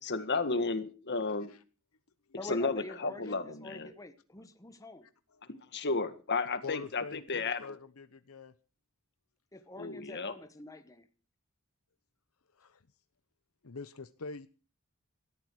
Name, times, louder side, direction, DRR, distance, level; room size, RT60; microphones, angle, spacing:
voice 1, 0.0-1.5 2.4-3.9 5.7-7.8 9.8-10.3, left 3 dB, 55° left, 1.8 m, -33 dB
voice 2, 2.4-5.1 9.5-11.1, left 2 dB, 15° left, 1.3 m, -47 dB
voice 3, 6.6-8.5 12.6-12.8 13.6-14.5, left 4 dB, 75° left, 0.9 m, -45 dB
18.5 x 13.5 x 4.8 m
head